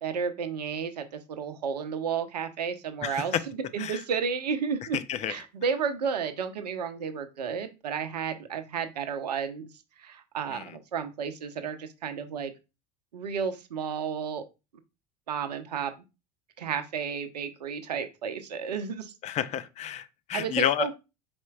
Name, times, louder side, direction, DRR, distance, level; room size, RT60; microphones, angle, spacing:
voice 1, 0.0-5.0 5.3-9.7 10.0-12.5 13.1-14.4 15.3-15.9 16.6-19.1 20.3-20.9, right 6 dB, 80° right, 0.6 m, -32 dB
voice 2, 3.0-3.4 3.8-4.0 4.9-5.3 10.5-10.7 19.2-20.9, left 10 dB, 35° left, 0.4 m, -30 dB
4.3 x 4.2 x 2.3 m
figure-of-eight pair, 70°, 21 cm